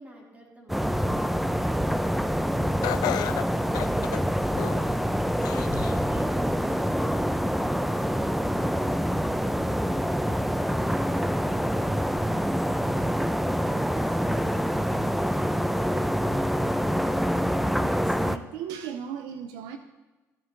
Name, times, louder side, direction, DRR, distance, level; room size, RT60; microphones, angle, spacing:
voice 1, 0.0-3.7 4.7-5.2 5.7-16.3, right 1 dB, 20° right, 0 dB, 3.2 m, -48 dB
sound 1, 0.7-18.4, equal, ahead, 0.6 m, -26 dB
Laughter, 2.8-4.9 5.4-6.0 6.5-6.6 7.6-7.7, left 14 dB, 75° left, 0.4 m, -32 dB
voice 2, 17.7-19.8, right 8 dB, 90° right, 8 dB, 0.7 m, -37 dB
14.0 x 9.7 x 3.9 m, 1.2 s
supercardioid pair, 70°, 7 cm